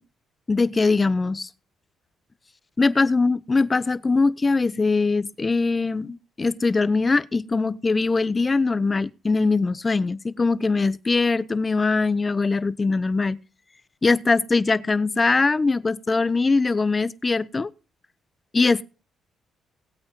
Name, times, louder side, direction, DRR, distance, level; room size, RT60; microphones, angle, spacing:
voice 1, 0.5-1.5 2.8-13.4 14.0-17.7 18.5-18.8, left 3 dB, 25° left, 0.6 m, -22 dB
18.5 x 8.6 x 2.9 m
cardioid pair, 90°, 0 cm